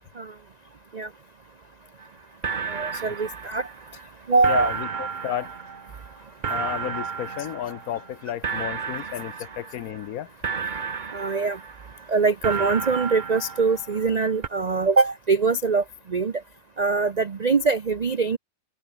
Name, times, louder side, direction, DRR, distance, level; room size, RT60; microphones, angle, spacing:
sound 1, 2.0-2.1 2.4-4.1 4.4-8.2 8.4-10.1 10.4-12.1 12.4-14.2 14.4-14.5, right 6 dB, 35° right, 0.9 m, -32 dB
voice 1, 2.6-5.0 5.3-5.4 6.0-6.3 7.4-7.5 8.2-8.3 8.9-9.8 11.1-16.4 16.8-18.4, right 4 dB, 85° right, 0.3 m, -24 dB
voice 2, 4.5-5.5 6.5-10.3, left 11 dB, 65° left, 1.0 m, -32 dB
open air
omnidirectional pair, 1.9 m